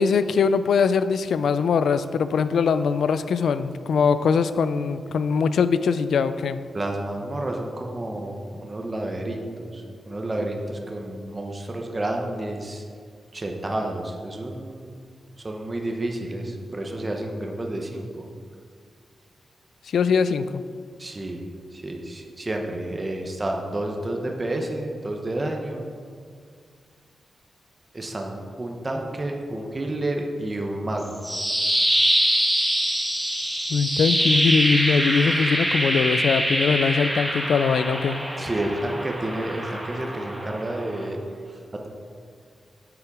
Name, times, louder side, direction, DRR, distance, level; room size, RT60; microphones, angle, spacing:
voice 1, 0.0-6.6 19.9-20.6 33.7-38.2, left 5 dB, 90° left, 12 dB, 0.4 m, -22 dB
voice 2, 6.7-12.8 13.3-14.9 15.4-18.3 21.0-25.8 27.9-31.2 38.4-41.2 41.5-41.9, right 1 dB, 20° right, 2 dB, 0.9 m, -30 dB
sound 1, 31.0-41.1, equal, 5° right, 1.4 m, -24 dB
8.5 x 8.2 x 4.8 m, 2.1 s
wide cardioid pair, 155°, 0 cm